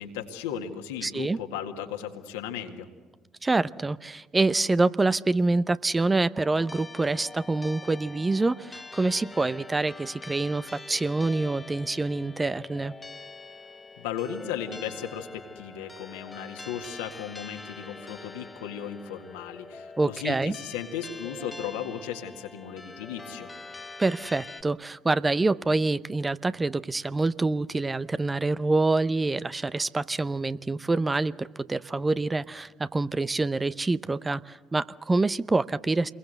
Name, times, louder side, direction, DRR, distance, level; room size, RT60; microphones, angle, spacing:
voice 1, 0.0-2.9 14.0-23.5, left 8 dB, 75° left, 5 dB, 1.9 m, -36 dB
voice 2, 1.0-1.4 3.4-12.9 20.0-20.5 24.0-36.1, right 3 dB, 20° right, 15 dB, 0.7 m, -26 dB
sound 1, 6.3-24.6, left 3 dB, 25° left, 1.2 m, -44 dB
28.5 x 22.0 x 7.9 m, 1.3 s
hypercardioid pair, 50°, 0 cm